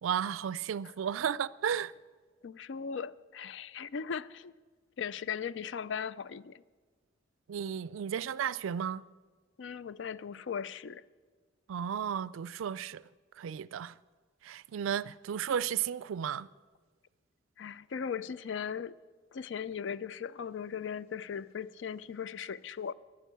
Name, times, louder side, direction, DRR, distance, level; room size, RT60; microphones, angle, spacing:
voice 1, 0.0-1.9 7.5-9.0 11.7-13.0 13.4-13.9 14.4-16.5, right 8 dB, 85° right, 0.3 m, -33 dB
voice 2, 2.4-4.5 5.0-6.6 9.6-11.0 17.6-19.0 19.3-22.9, left 7 dB, 65° left, 0.4 m, -38 dB
11.0 x 10.0 x 8.3 m
head